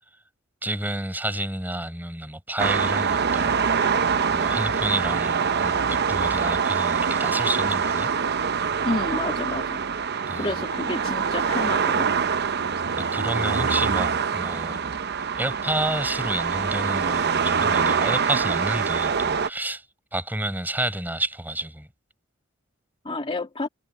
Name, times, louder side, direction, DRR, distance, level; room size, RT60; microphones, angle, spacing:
voice 1, 0.6-3.9 4.3-8.1 10.3-10.5 13.0-14.8 15.4-19.8 20.1-21.9, right 1 dB, 10° right, 5.6 m, -30 dB
sound 1, 2.6-19.5, right 6 dB, 50° right, 0.8 m, -24 dB
voice 2, 8.8-9.9 10.3-12.1 23.0-23.7, left 2 dB, 25° left, 2.6 m, -30 dB
head